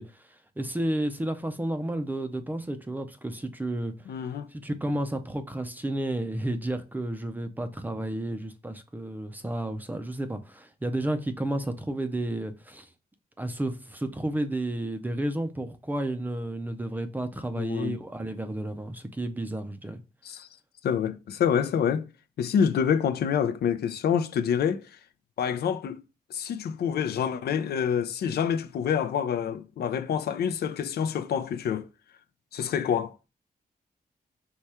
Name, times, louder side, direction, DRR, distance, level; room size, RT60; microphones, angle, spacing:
voice 1, 0.0-12.9 13.4-20.0, right 1 dB, 10° right, 0.4 m, -32 dB
voice 2, 4.1-4.5 17.6-18.0 20.2-20.5 20.8-22.1 22.4-24.8 25.4-26.0 26.3-31.9 32.5-33.1, left 7 dB, 85° left, 0.4 m, -27 dB
4.7 x 2.3 x 4.1 m
wide cardioid pair, 180°, 16 cm